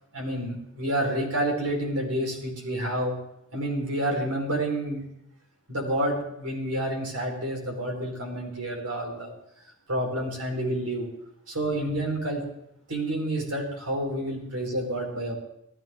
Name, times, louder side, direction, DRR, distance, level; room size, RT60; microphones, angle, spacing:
voice 1, 0.1-3.1 3.5-5.0 5.7-9.3 9.9-11.1 11.5-12.4 12.9-15.3, right 1 dB, 85° right, 0 dB, 4.6 m, -29 dB
19.0 x 14.0 x 3.8 m, 0.78 s
head